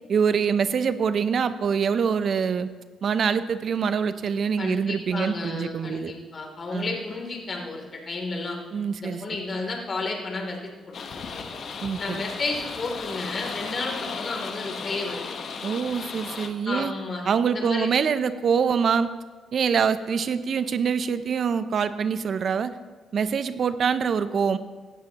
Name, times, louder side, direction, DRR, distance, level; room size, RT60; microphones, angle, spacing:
voice 1, 0.1-2.7 3.0-6.1 6.7-6.9 8.7-9.2 11.8-12.2 15.6-16.9 17.3-19.1 19.5-22.8 23.1-24.6, right 6 dB, 55° right, 13 dB, 0.5 m, -25 dB
voice 2, 4.6-8.6 9.0-10.7 11.1-11.4 12.0-15.2 16.7-17.9, left 3 dB, 40° left, 1 dB, 2.8 m, -32 dB
sound 1, 10.9-16.5, left 5 dB, 60° left, 1.1 m, -35 dB
16.5 x 12.0 x 2.9 m, 1.3 s
cardioid pair, 90°, 0 cm